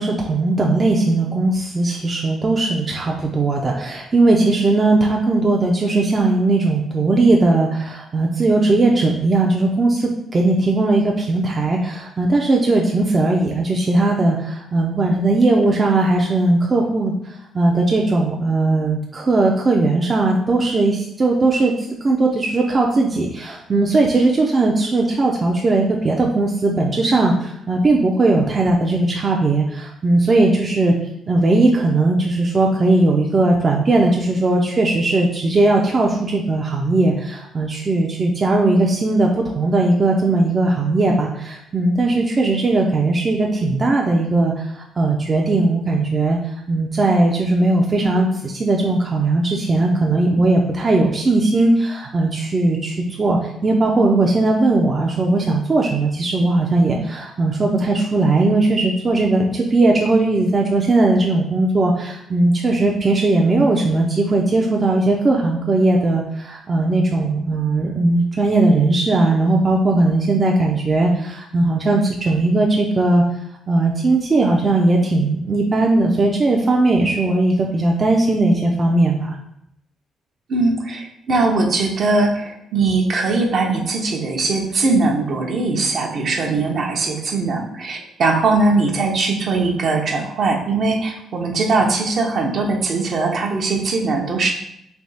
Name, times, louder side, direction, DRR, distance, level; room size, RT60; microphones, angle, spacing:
voice 1, 0.0-17.1 17.5-21.7 22.0-30.9 31.3-73.2 73.7-79.4, right 2 dB, 35° right, 0 dB, 0.5 m, -18 dB
voice 2, 80.5-94.5, right 3 dB, 60° right, 1 dB, 0.8 m, -20 dB
3.4 x 2.8 x 4.0 m, 0.78 s
cardioid pair, 90°, 0 cm